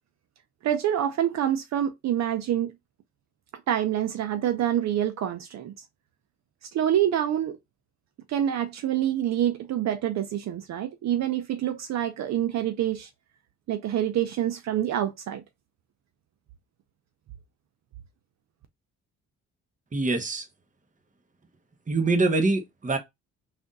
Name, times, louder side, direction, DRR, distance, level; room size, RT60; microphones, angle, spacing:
voice 1, 0.6-2.7 3.7-5.7 6.6-7.6 8.3-13.1 13.7-15.4, right 11 dB, 65° right, 0.6 m, -26 dB
voice 2, 19.9-20.5 21.9-23.0, right 3 dB, 25° right, 1.0 m, -24 dB
3.4 x 2.5 x 3.9 m
cardioid pair, 90°, 30 cm